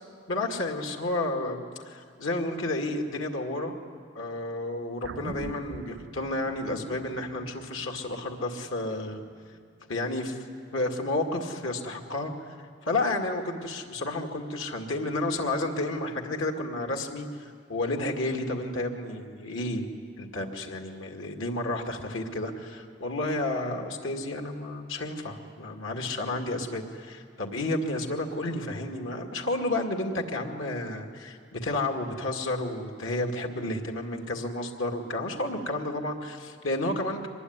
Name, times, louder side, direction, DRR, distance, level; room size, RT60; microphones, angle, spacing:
voice 1, 0.3-3.7 4.1-9.2 9.9-10.4 10.7-19.9 20.2-37.3, left 2 dB, 85° left, 3 dB, 2.2 m, -31 dB
sound 1, 5.0-9.6 10.0-10.1, right 3 dB, 65° right, 0.6 m, -44 dB
24.5 x 20.5 x 9.7 m, 2.2 s
head